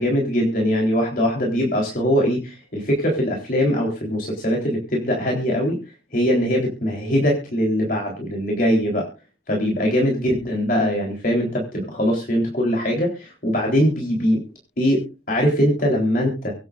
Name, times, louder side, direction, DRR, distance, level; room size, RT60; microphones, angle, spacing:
voice 1, 0.0-5.8 6.1-9.1 9.5-14.4 14.8-16.5, equal, 50° left, -1 dB, 3.9 m, -21 dB
24.0 x 9.2 x 2.6 m, 0.31 s
head